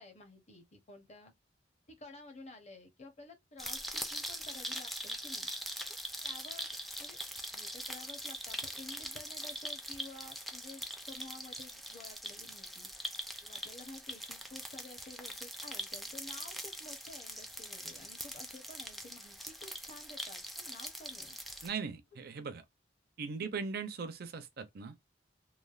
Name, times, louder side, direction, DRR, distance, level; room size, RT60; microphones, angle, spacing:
voice 1, 0.0-1.3 1.9-5.5 5.9-6.0 6.2-6.7 7.0-7.2 7.5-12.9 13.4-21.4 23.3-23.6, left 2 dB, 35° left, 0.7 m, -52 dB
sound 1, 3.6-21.7, equal, ahead, 0.3 m, -42 dB
voice 2, 21.6-22.6 23.2-25.0, right 5 dB, 55° right, 0.5 m, -39 dB
3.2 x 2.0 x 2.3 m
head